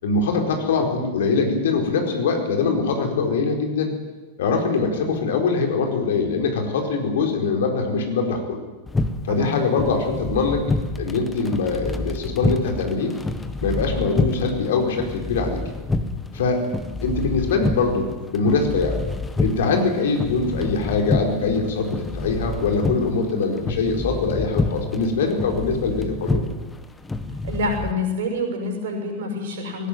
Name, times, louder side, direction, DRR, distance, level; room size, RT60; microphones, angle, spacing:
voice 1, 0.0-3.9 4.4-8.6 9.2-10.6 11.0-13.1 13.6-15.6 16.3-16.6 17.0-19.0 19.4-26.5, left 4 dB, 60° left, 3 dB, 4.5 m, -23 dB
sound 1, 8.9-27.9, left 2 dB, 10° left, 1.5 m, -28 dB
voice 2, 9.3-9.6 27.4-29.9, left 1 dB, 55° right, 3 dB, 6.5 m, -27 dB
19.5 x 18.0 x 9.3 m, 1.2 s
figure-of-eight pair, 90°, 0 cm